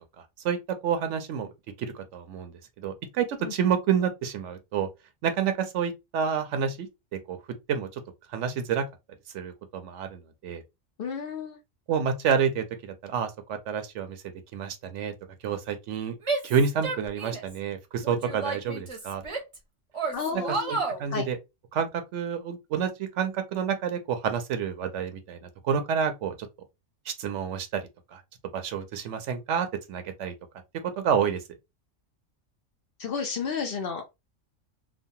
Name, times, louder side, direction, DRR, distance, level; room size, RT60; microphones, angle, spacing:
voice 1, 0.8-1.5 1.8-4.9 5.2-6.9 7.3-7.4 7.7-8.0 8.3-8.8 9.3-10.6 11.9-14.2 14.5-15.1 15.4-16.1 16.4-19.2 20.7-21.4 21.7-26.3 27.1-27.8 28.1-28.2 28.5-30.3 31.0-31.4, right 7 dB, 75° right, 0.9 m, -29 dB
voice 2, 11.0-11.6 20.1-21.3 33.0-34.0, left 6 dB, 55° left, 0.7 m, -32 dB
Female speech woman speaking / Yell, 16.2-17.6 18.0-19.6 19.9-21.0, right 3 dB, 30° right, 0.7 m, -31 dB
3.0 x 2.1 x 2.6 m
omnidirectional pair, 1.3 m